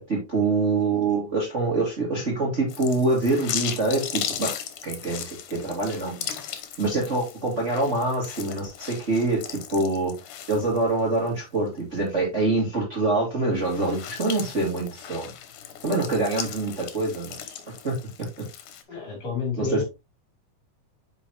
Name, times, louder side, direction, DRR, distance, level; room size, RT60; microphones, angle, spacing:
voice 1, 0.0-4.5 4.8-5.2 5.5-6.2 6.8-10.1 10.5-15.3 15.8-17.5 17.8-17.9 19.6-19.8, right 2 dB, 25° right, -3 dB, 2.3 m, -25 dB
sound 1, 2.7-11.3 11.7-11.8 13.6-18.8, left 10 dB, 90° left, 2.4 m, -37 dB
voice 2, 18.9-19.8, left 5 dB, 55° left, 1 dB, 4.4 m, -29 dB
8.9 x 5.2 x 3.0 m, 0.25 s
omnidirectional pair, 3.5 m